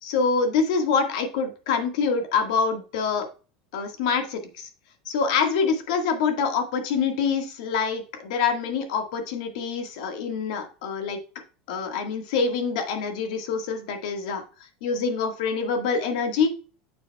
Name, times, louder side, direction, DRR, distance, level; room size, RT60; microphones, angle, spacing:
voice 1, 0.0-3.3 3.7-4.7 5.0-11.2 11.7-14.4 14.8-16.6, left 5 dB, 75° left, 6 dB, 1.6 m, -25 dB
9.0 x 6.9 x 2.3 m, 0.35 s
supercardioid pair, 115°, 4 cm